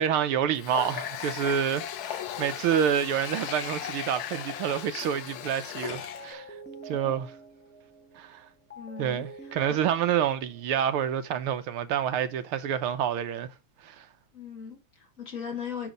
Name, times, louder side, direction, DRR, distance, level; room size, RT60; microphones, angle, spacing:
voice 1, 0.0-6.5 6.9-7.3 8.2-8.4 9.0-13.5 13.8-14.1, right 9 dB, 80° right, 1.7 m, -28 dB
Water tap faucet, 0.6-6.3, left 10 dB, 70° left, 0.9 m, -37 dB
sound 1, 5.3-5.6 6.0-11.1, right 2 dB, 5° left, 1.0 m, -47 dB
voice 2, 8.8-9.8 14.3-15.9, left 7 dB, 40° left, 2.2 m, -39 dB
9.2 x 3.5 x 6.5 m
omnidirectional pair, 2.4 m